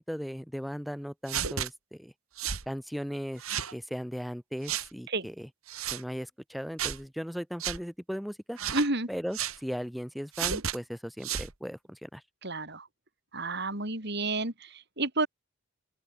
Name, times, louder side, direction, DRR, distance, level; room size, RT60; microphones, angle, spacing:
voice 1, 0.1-2.1 2.7-3.4 3.7-5.5 5.9-8.6 9.1-12.2, equal, ahead, 3.1 m, -37 dB
sound 1, 1.3-1.7 2.4-2.7 3.4-3.7 4.7-4.9 5.7-6.0 6.8-7.0 7.6-7.8 8.6-8.9 9.3-9.6 10.3-10.8 11.2-11.5, right 9 dB, 90° right, 2.1 m, -32 dB
voice 2, 8.7-9.1 12.4-12.9 13.3-15.3, right 2 dB, 55° right, 5.7 m, -30 dB
open air
head